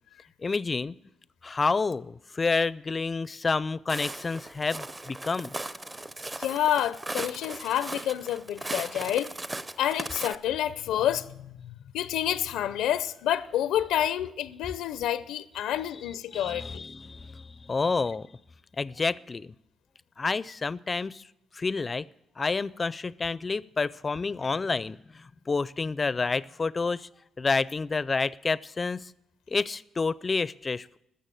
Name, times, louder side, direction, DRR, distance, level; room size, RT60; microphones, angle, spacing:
voice 1, 0.4-1.0 1.4-5.5 16.3-18.3 18.8-19.5 20.2-21.2 21.5-22.1 22.4-27.1 27.4-29.1 29.5-31.0, left 4 dB, 30° left, 0.4 m, -29 dB
Walk footsteps, 3.9-10.3, right 2 dB, 20° right, 0.6 m, -38 dB
voice 2, 6.4-9.3 9.8-16.9, left 11 dB, 90° left, 0.5 m, -29 dB
14.5 x 6.6 x 9.1 m
cardioid pair, 90°, 0 cm